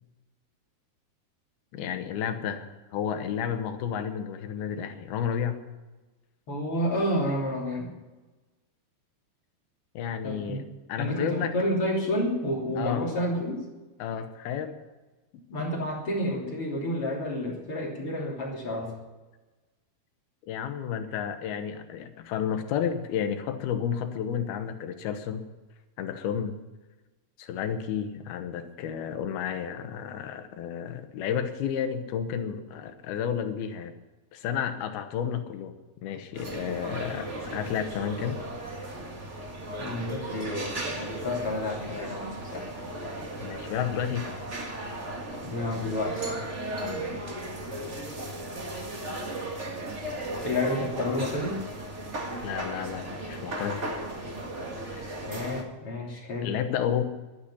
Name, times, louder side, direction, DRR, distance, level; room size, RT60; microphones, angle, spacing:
voice 1, 1.7-5.6 9.9-10.6 10.9-11.6 12.8-13.1 14.0-14.8 20.5-25.4 26.0-26.6 27.4-33.9 34.3-35.7 36.0-38.4 43.4-44.3 46.8-47.2 52.4-54.0 54.9-55.2 56.4-57.0, left 8 dB, 75° left, 8 dB, 2.9 m, -31 dB
voice 2, 6.5-7.9 10.2-10.6 11.0-13.7 15.5-18.9 39.8-42.7 45.4-46.4 50.4-51.6 55.2-56.5, left 1 dB, 35° left, -2 dB, 3.7 m, -30 dB
sound 1, 36.3-55.6, right 1 dB, 40° right, 0.9 m, -36 dB
12.0 x 10.5 x 9.9 m, 1.2 s
omnidirectional pair, 4.5 m